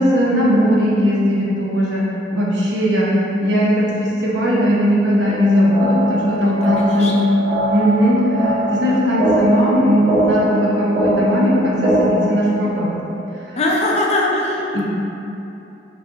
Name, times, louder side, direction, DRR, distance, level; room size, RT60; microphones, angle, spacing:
voice 1, 0.0-2.0 2.3-3.1 3.4-7.2 7.7-12.9 14.7-14.8, equal, 75° right, -6 dB, 0.8 m, -18 dB
sound 1, 5.2-12.2, right 1 dB, 20° right, 0.8 m, -21 dB
voice 2, 6.4-7.3 13.6-14.8, left 2 dB, 35° left, -3 dB, 0.4 m, -21 dB
5.1 x 2.4 x 2.8 m, 2.9 s
head